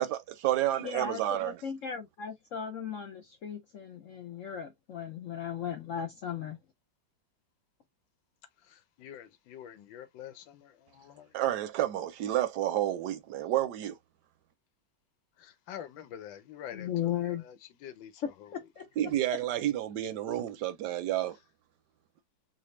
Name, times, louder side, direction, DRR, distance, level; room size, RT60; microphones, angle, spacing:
voice 1, 0.0-1.6 11.3-14.0 19.0-21.4, right 13 dB, 70° right, 1.2 m, -30 dB
voice 2, 0.8-6.6 16.7-17.4 18.5-18.9, left 9 dB, 65° left, 0.8 m, -36 dB
voice 3, 8.6-11.4 15.4-18.5, left 10 dB, 90° left, 1.5 m, -47 dB
4.2 x 2.0 x 3.1 m
omnidirectional pair, 2.0 m